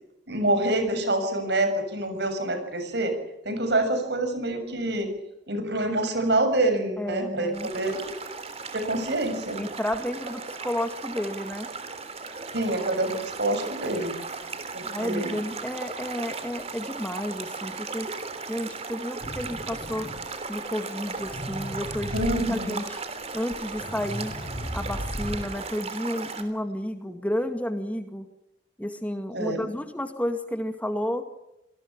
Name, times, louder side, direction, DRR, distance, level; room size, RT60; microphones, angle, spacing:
voice 1, 0.3-3.1 3.5-5.1 5.5-7.9 8.7-9.6 12.5-14.1 14.7-15.4 22.1-22.7 29.3-29.7, right 1 dB, 65° right, 7 dB, 7.2 m, -26 dB
voice 2, 7.0-7.7 9.6-11.7 14.8-18.1 18.5-20.1 20.5-22.2 22.5-22.8 23.3-24.3 24.7-28.3 28.8-31.2, equal, 10° left, 8 dB, 2.0 m, -31 dB
sound 1, 7.5-26.4, right 4 dB, 35° right, 3.4 m, -37 dB
sound 2, 19.2-20.4 21.0-22.4 23.2-23.3 23.5-25.6, equal, 30° left, 7.2 m, -35 dB
27.5 x 19.5 x 7.3 m, 0.89 s
head